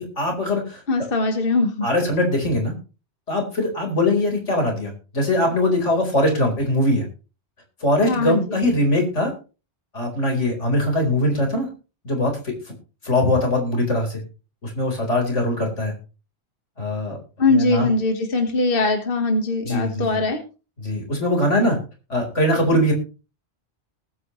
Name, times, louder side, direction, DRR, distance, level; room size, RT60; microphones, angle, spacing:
voice 1, 0.0-0.8 1.8-2.7 3.3-7.1 7.8-9.3 9.9-11.7 12.0-12.5 13.0-14.2 14.6-15.9 16.8-17.2 17.5-17.9 19.6-20.2 20.8-21.8 22.1-22.9, left 1 dB, 85° left, 2 dB, 4.6 m, -21 dB
voice 2, 0.9-1.8 8.0-8.4 17.4-20.4, left 3 dB, 50° left, 5 dB, 1.7 m, -21 dB
20.0 x 8.7 x 3.1 m, 0.33 s
omnidirectional pair, 1.2 m